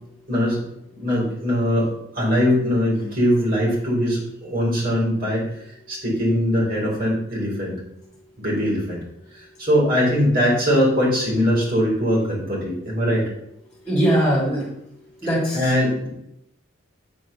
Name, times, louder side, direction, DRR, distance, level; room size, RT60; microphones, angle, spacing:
voice 1, 0.3-0.6 0.9-1.9 2.1-7.8 8.4-9.0 9.3-13.2 15.5-16.1, equal, 45° right, -4 dB, 4.8 m, -21 dB
voice 2, 13.9-14.6 15.2-15.7, right 1 dB, 5° left, -7 dB, 3.8 m, -20 dB
9.1 x 6.3 x 7.0 m, 0.79 s
head